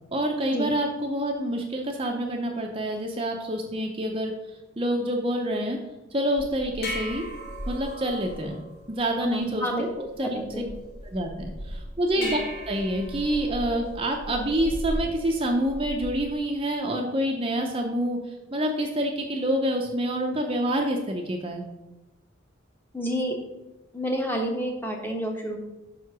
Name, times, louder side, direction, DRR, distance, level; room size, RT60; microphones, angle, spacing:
voice 1, 0.1-4.3 4.8-5.8 6.1-7.2 7.7-8.6 8.9-10.4 11.1-12.4 12.7-18.2 18.5-21.6, right 1 dB, 25° right, 2 dB, 0.6 m, -27 dB
sound 1, 6.4-16.3, equal, 50° left, 1.6 m, -37 dB
voice 2, 9.2-9.8 10.2-10.7 12.2-12.4 22.9-23.4 23.9-25.6, equal, 10° left, 1 dB, 0.9 m, -29 dB
5.7 x 4.6 x 6.0 m, 1.0 s
head